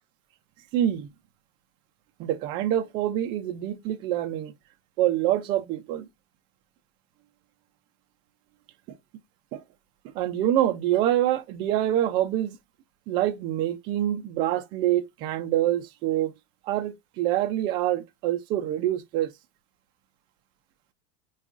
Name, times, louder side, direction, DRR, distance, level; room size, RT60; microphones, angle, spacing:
voice 1, 0.7-1.1 2.2-4.5 5.0-6.0 9.5-9.6 10.2-12.6 13.1-16.3 16.7-19.3, right 12 dB, 35° right, 0.4 m, -26 dB
4.5 x 2.4 x 2.4 m
supercardioid pair, 170°, 14 cm